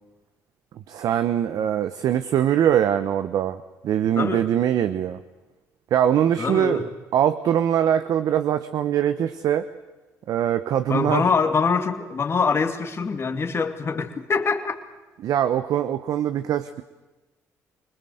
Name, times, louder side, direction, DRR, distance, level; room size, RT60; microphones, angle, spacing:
voice 1, 0.9-5.2 5.9-9.7 10.3-11.3 15.2-16.8, right 10 dB, 70° right, 11 dB, 1.0 m, -22 dB
voice 2, 6.4-6.9 10.9-14.8, left 5 dB, 40° left, 6 dB, 2.6 m, -24 dB
25.5 x 20.0 x 7.9 m, 1.1 s
supercardioid pair, 75°, 7 cm